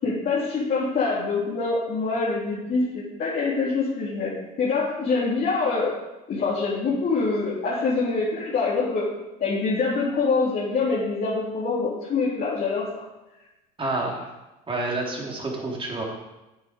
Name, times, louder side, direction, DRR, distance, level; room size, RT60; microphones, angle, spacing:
voice 1, 0.0-5.9 6.3-9.1 9.4-13.0, left 4 dB, 50° left, -7 dB, 3.6 m, -25 dB
voice 2, 13.8-14.3 14.7-16.0, right 2 dB, 25° right, -2 dB, 3.6 m, -28 dB
9.5 x 8.3 x 5.3 m, 1.0 s
supercardioid pair, 90°, 20 cm